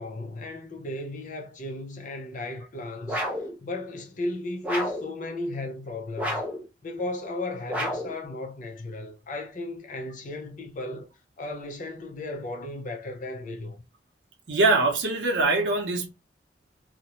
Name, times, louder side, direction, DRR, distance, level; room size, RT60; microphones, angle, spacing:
voice 1, 0.0-3.2 3.6-6.4 6.8-11.1 11.4-13.8, left 2 dB, 45° left, 0.5 m, -35 dB
sound 1, 3.1-3.5 4.6-5.1 6.2-6.6 7.7-8.2, equal, 10° right, 0.6 m, -30 dB
voice 2, 14.5-16.1, right 3 dB, 80° right, 0.7 m, -23 dB
2.4 x 2.1 x 2.9 m
head